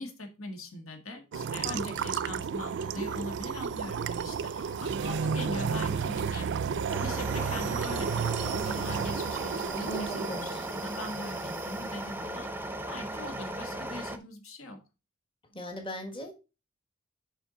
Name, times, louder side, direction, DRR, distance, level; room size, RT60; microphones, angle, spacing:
voice 1, 0.0-12.5 12.9-14.8, left 1 dB, 80° left, 4 dB, 1.7 m, -41 dB
sound 1, 1.3-11.7, right 6 dB, 60° right, 0.4 m, -32 dB
voice 2, 1.6-2.2 9.9-10.6 15.5-16.3, equal, 25° left, 3 dB, 1.5 m, -39 dB
Crowd, 3.5-11.6, left 2 dB, 45° left, 4.2 m, -54 dB
sound 2, 6.9-14.2, right 1 dB, 10° right, 0.7 m, -37 dB
7.2 x 5.7 x 3.8 m, 0.29 s
head